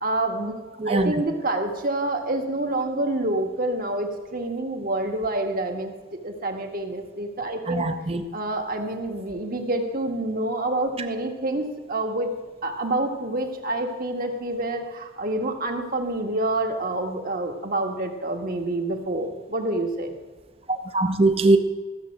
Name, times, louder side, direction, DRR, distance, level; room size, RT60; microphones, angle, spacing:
voice 1, 0.0-7.8 8.3-12.3 12.6-20.1, right 2 dB, 45° right, 1.6 m, -27 dB
voice 2, 0.8-1.1 7.7-8.2 11.0-11.1 20.7-21.6, right 2 dB, 30° right, 0.8 m, -21 dB
14.0 x 7.6 x 7.4 m
head